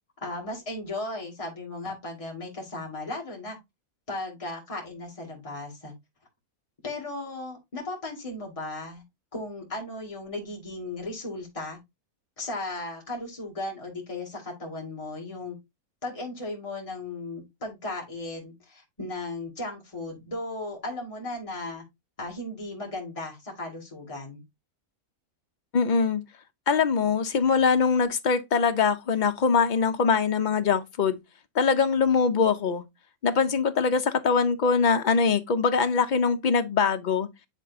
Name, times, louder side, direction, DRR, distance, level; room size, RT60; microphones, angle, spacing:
voice 1, 0.2-3.6 4.1-5.9 6.8-9.0 9.3-11.8 12.4-15.6 16.0-21.8 22.2-24.4, left 2 dB, 20° left, 2.2 m, -36 dB
voice 2, 25.7-26.2 26.7-31.2 31.5-32.8 33.2-37.3, left 5 dB, 50° left, 0.5 m, -23 dB
10.0 x 3.8 x 2.6 m
omnidirectional pair, 1.5 m